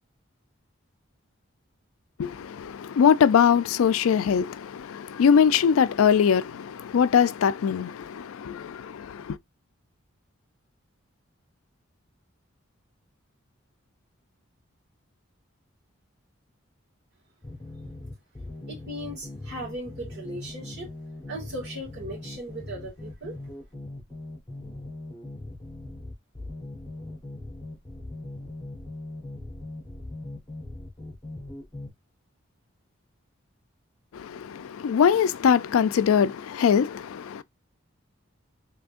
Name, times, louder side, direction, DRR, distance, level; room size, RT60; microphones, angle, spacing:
voice 1, 2.2-9.4 34.1-37.4, left 7 dB, 85° left, 0.4 m, -22 dB
sound 1, 17.4-31.9, left 2 dB, 15° left, 1.2 m, -40 dB
voice 2, 18.7-20.9 21.3-23.4, right 1 dB, 55° right, 2.1 m, -37 dB
3.7 x 3.3 x 2.5 m
head